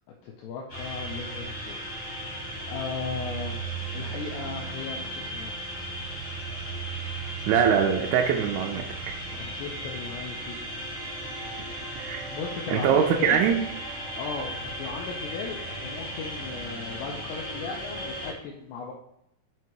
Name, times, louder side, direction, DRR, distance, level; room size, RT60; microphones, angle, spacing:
voice 1, 0.2-2.4 2.7-3.6 3.9-5.9 9.3-10.6 12.3-13.4 14.0-18.9, left 5 dB, 85° left, -1 dB, 2.4 m, -37 dB
sound 1, 0.7-18.3, right 1 dB, 45° left, 0.8 m, -36 dB
voice 2, 7.5-8.9 11.9-12.2 12.7-13.5, right 7 dB, 85° right, 1 dB, 2.8 m, -22 dB
7.9 x 2.9 x 4.6 m, 0.76 s
omnidirectional pair, 5.7 m